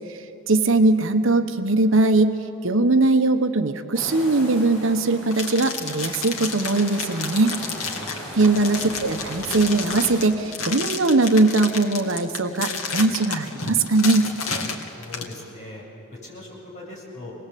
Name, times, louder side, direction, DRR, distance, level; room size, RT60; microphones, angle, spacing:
voice 1, 0.5-2.3 2.6-7.5 8.3-14.3, right 2 dB, 65° right, 7 dB, 1.1 m, -20 dB
sound 1, 3.9-10.2, equal, 10° left, 7.8 m, -38 dB
sound 2, 5.3-15.3, left 4 dB, 85° left, 2.3 m, -31 dB
voice 2, 7.9-8.3 15.0-17.3, left 2 dB, 35° left, -4 dB, 7.6 m, -40 dB
26.5 x 20.0 x 8.5 m, 2.9 s
head